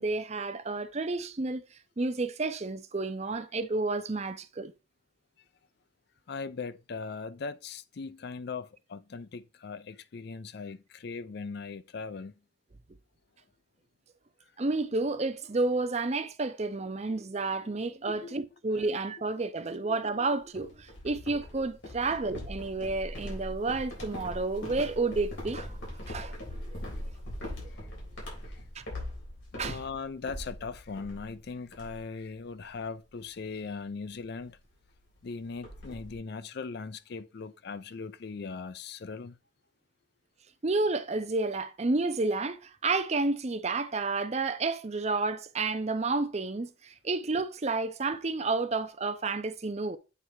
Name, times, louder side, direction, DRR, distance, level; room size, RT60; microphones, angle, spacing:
voice 1, 0.0-1.6 2.0-4.7 14.6-26.4 28.8-28.9 29.6-29.8 40.6-50.0, right 3 dB, 35° right, 0.6 m, -30 dB
voice 2, 6.3-12.3 18.1-18.4 18.8-18.9 19.9-20.0 26.9-27.0 27.7-27.9 28.5-28.6 29.5-34.6 35.2-39.4, left 4 dB, 55° left, 0.4 m, -39 dB
sound 1, 20.5-31.4 31.7-32.2 32.5-32.8 33.2-33.4 34.5-34.6 34.8-34.9 35.2-36.1, left 1 dB, 75° left, 3.5 m, -41 dB
8.1 x 3.3 x 4.5 m
head